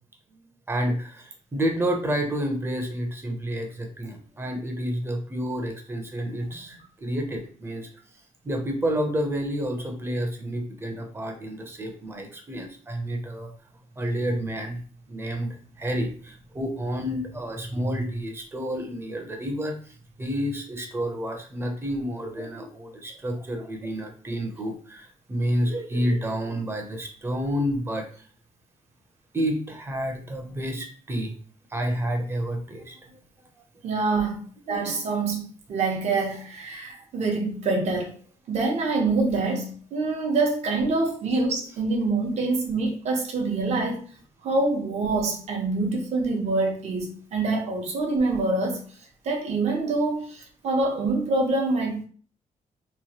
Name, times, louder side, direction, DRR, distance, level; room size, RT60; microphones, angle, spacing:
voice 1, 0.7-7.9 8.4-13.5 14.0-14.8 15.1-28.3 29.3-31.3 31.7-33.2 34.7-35.0, equal, 15° right, 3 dB, 0.6 m, -29 dB
voice 2, 33.8-34.4 34.7-35.4 35.7-38.1 38.5-44.0 44.4-48.8 49.2-52.0, right 3 dB, 55° right, 0 dB, 0.8 m, -25 dB
3.0 x 2.2 x 2.9 m, 0.43 s
cardioid pair, 135°, 13 cm